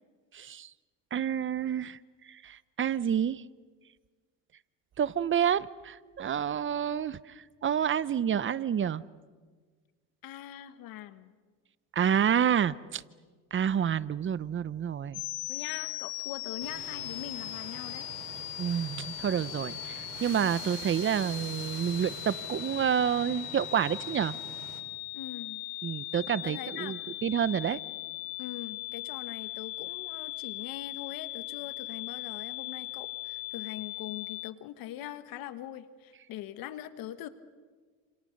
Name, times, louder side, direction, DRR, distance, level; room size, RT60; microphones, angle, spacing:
voice 1, 0.3-0.7 1.1-2.0 2.3-3.4 5.0-9.0 11.9-13.0 13.5-15.2 18.6-24.3 25.8-27.8, right 8 dB, 35° right, 18 dB, 0.8 m, -29 dB
voice 2, 10.2-11.3 15.5-18.1 25.1-25.6 26.4-27.0 28.4-37.3, left 12 dB, 70° left, 11 dB, 1.5 m, -42 dB
sound 1, 15.1-34.5, left 23 dB, 85° left, 0.8 m, -39 dB
sound 2, 16.6-24.8, right 9 dB, 75° right, 4.7 m, -46 dB
29.5 x 28.0 x 6.6 m, 1.5 s
cardioid pair, 105°, 37 cm